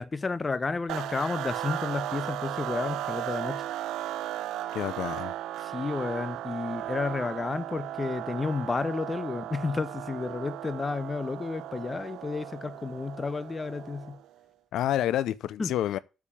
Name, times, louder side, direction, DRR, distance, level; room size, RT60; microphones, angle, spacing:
voice 1, 0.0-3.6 5.6-14.2 15.6-15.7, left 4 dB, 30° left, 0.9 m, -31 dB
sound 1, 0.9-14.3, right 13 dB, 90° right, 0.7 m, -36 dB
voice 2, 4.7-5.3 14.7-16.0, left 12 dB, 80° left, 0.5 m, -28 dB
8.5 x 7.2 x 7.2 m
cardioid pair, 90°, 0 cm